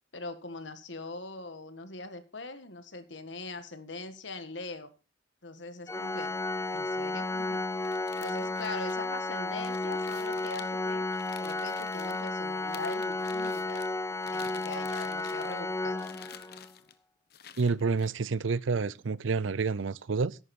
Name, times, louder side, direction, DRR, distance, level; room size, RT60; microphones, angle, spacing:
voice 1, 0.1-4.9 5.4-6.3 6.7-7.6 8.2-11.1 11.4-13.8 14.3-16.0, left 2 dB, 70° left, 1.7 m, -41 dB
Organ, 5.9-16.7, left 2 dB, 15° left, 0.5 m, -33 dB
sound 1, 7.8-12.3 12.7-13.9 14.2-15.7 16.0-16.9 17.3-18.1, left 8 dB, 55° left, 1.1 m, -50 dB
voice 2, 17.6-20.4, right 4 dB, 90° right, 0.6 m, -29 dB
14.0 x 11.0 x 4.3 m
head